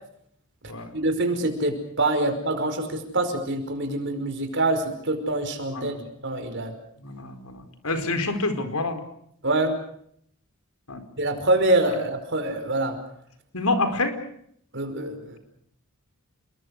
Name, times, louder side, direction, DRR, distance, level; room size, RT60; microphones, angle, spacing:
voice 1, 0.9-5.9 6.2-6.7 9.4-9.8 11.2-13.0 14.7-15.4, right 2 dB, 55° right, 7 dB, 5.2 m, -25 dB
voice 2, 5.7-6.0 7.0-9.0 10.9-11.0 13.5-14.2, left 2 dB, 75° left, 8 dB, 4.5 m, -27 dB
30.0 x 21.5 x 6.6 m, 0.68 s
head